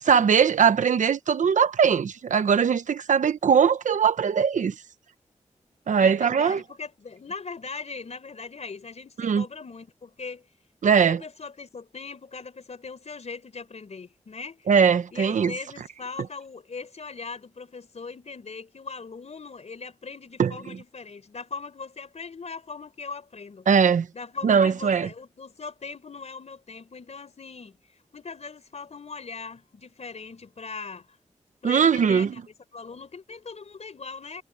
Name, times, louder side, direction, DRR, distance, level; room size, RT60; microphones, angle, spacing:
voice 1, 0.0-4.8 5.9-6.6 9.2-9.4 10.8-11.2 14.7-15.5 20.4-20.5 23.7-24.1 24.4-25.1 31.6-32.3, right 7 dB, 85° right, 1.0 m, -20 dB
voice 2, 6.0-10.5 10.9-14.7 15.1-23.7 24.1-27.8 28.1-31.1 31.6-32.4 32.7-34.4, left 4 dB, 60° left, 4.2 m, -40 dB
cardioid pair, 60°, 13 cm